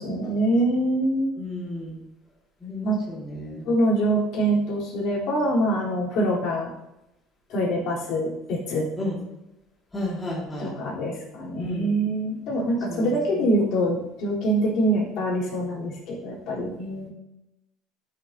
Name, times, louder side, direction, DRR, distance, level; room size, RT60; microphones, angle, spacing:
voice 1, 0.0-1.4 2.8-2.9 3.6-6.7 7.5-8.9 10.6-17.1, right 1 dB, 60° left, -5 dB, 3.7 m, -24 dB
voice 2, 1.4-2.0 2.6-3.7 9.0-9.2 9.9-10.7 11.6-11.9 12.9-13.1 13.3-13.5, left 1 dB, 10° left, -6 dB, 2.3 m, -32 dB
13.0 x 6.7 x 2.9 m, 0.89 s
cardioid pair, 150°, 0 cm